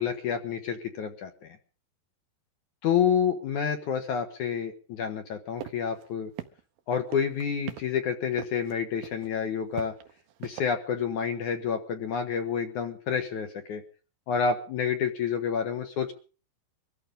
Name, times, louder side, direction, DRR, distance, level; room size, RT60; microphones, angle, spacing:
voice 1, 0.0-1.6 2.8-6.3 6.9-9.9 10.4-13.8 14.3-16.1, left 7 dB, 65° left, 6 dB, 2.1 m, -29 dB
sound 1, 5.6-5.7 6.0-6.1 6.4-6.8 7.1-7.8 8.4-8.7 9.0-9.3 9.7-10.6, right 13 dB, 70° right, 2.4 m, -37 dB
23.5 x 14.0 x 3.8 m, 0.38 s
omnidirectional pair, 5.0 m